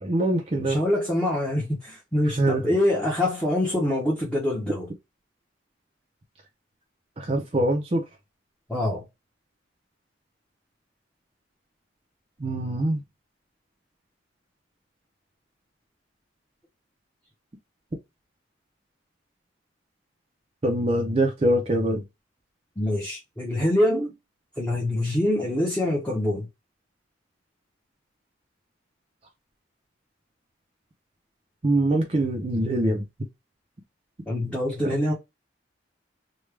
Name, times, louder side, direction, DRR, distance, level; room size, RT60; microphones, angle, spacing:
voice 1, 0.0-0.8 2.4-2.6 4.7-4.8 7.2-8.0 12.4-13.0 20.6-22.0 31.6-33.0 34.8-34.9, right 1 dB, 30° right, 0.5 m, -23 dB
voice 2, 0.6-4.9 8.7-9.0 22.8-24.1 24.6-26.5 34.3-35.1, left 1 dB, 5° left, 0.8 m, -25 dB
3.2 x 2.2 x 3.3 m
head